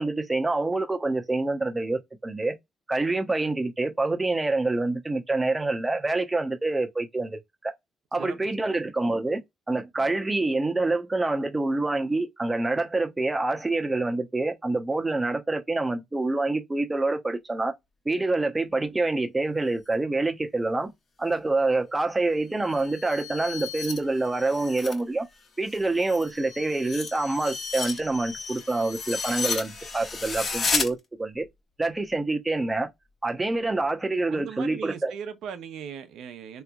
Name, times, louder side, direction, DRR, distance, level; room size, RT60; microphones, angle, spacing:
voice 1, 0.0-2.6 2.9-7.7 8.1-9.4 9.7-17.7 18.1-20.9 21.2-25.3 25.6-31.5 31.8-32.9 33.2-35.1, right 2 dB, 20° right, 0.8 m, -26 dB
sound 1, 22.6-25.0 25.4-30.9, left 4 dB, 45° left, 1.1 m, -33 dB
voice 2, 34.3-36.6, right 7 dB, 80° right, 0.8 m, -39 dB
3.3 x 3.0 x 2.3 m
cardioid pair, 90°, 0 cm